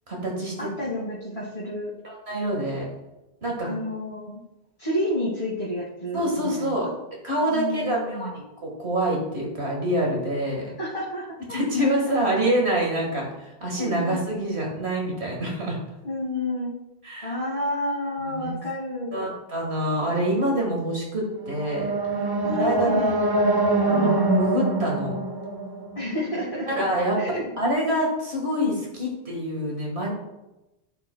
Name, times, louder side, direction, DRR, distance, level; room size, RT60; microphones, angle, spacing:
voice 1, 0.1-0.7 2.0-2.9 3.4-3.7 6.1-6.9 7.2-10.7 11.5-15.8 17.0-17.3 18.2-18.6 19.1-21.9 22.5-23.2 23.8-24.1 24.4-25.1 26.7-27.2 27.6-30.1, right 1 dB, 80° right, -1 dB, 2.0 m, -26 dB
voice 2, 0.6-1.9 3.6-4.4 4.8-6.9 7.5-8.4 10.8-11.6 12.1-12.2 13.8-14.2 16.0-16.8 17.2-19.3 22.4-23.2 23.9-24.2 26.0-26.8 27.2-27.5, left 1 dB, 30° left, -7 dB, 1.8 m, -30 dB
sound 1, 21.4-26.5, right 2 dB, 30° right, 0.5 m, -24 dB
12.0 x 8.1 x 2.3 m, 0.98 s
omnidirectional pair, 1.1 m